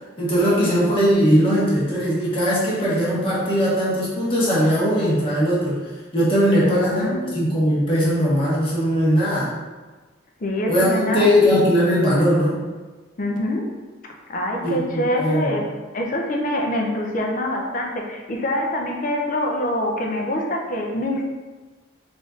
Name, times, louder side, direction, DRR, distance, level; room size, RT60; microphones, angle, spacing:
voice 1, 0.2-5.8 6.1-9.5 10.7-12.6 14.6-15.6, equal, 30° left, -8 dB, 1.2 m, -19 dB
voice 2, 6.6-7.4 10.4-11.4 13.2-13.7 14.0-15.6 15.9-21.3, left 1 dB, 45° left, 1 dB, 0.5 m, -25 dB
3.6 x 2.6 x 3.7 m, 1.3 s
head